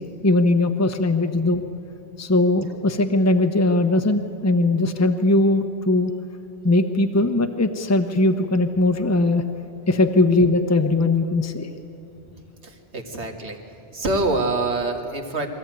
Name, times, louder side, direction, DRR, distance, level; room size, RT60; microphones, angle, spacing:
voice 1, 0.0-1.6 2.2-6.1 6.6-9.4 9.9-11.7, left 2 dB, 15° left, 6 dB, 0.9 m, -20 dB
voice 2, 12.6-13.6 13.9-15.5, right 2 dB, 75° right, 3 dB, 2.2 m, -25 dB
23.5 x 14.5 x 9.1 m, 2.9 s
omnidirectional pair, 1.2 m